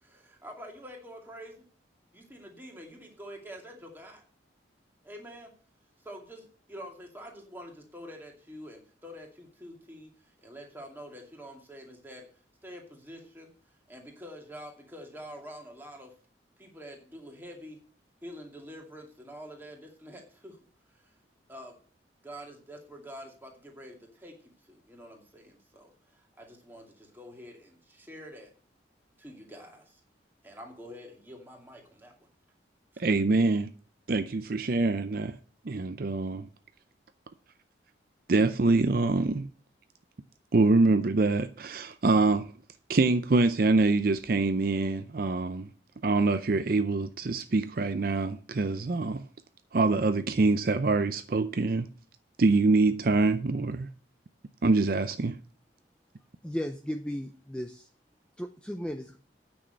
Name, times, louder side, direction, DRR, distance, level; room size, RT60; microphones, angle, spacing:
voice 1, 0.0-1.7 2.1-4.2 5.0-5.5 6.0-12.3 12.6-13.5 13.9-16.1 16.6-17.8 18.2-20.6 20.9-21.1 21.5-21.8 22.2-28.5 29.2-30.0 30.4-32.3 32.9-33.0, equal, 10° right, 2.4 m, -46 dB
voice 2, 33.0-33.7 34.1-35.3 35.6-36.5 38.3-39.5 40.5-42.5 42.9-45.7 46.0-49.3 49.7-51.9 52.4-53.9 54.6-55.4, right 3 dB, 50° right, 0.5 m, -25 dB
voice 3, 56.4-57.9 58.4-59.2, equal, 5° left, 0.5 m, -35 dB
9.2 x 6.3 x 7.6 m
head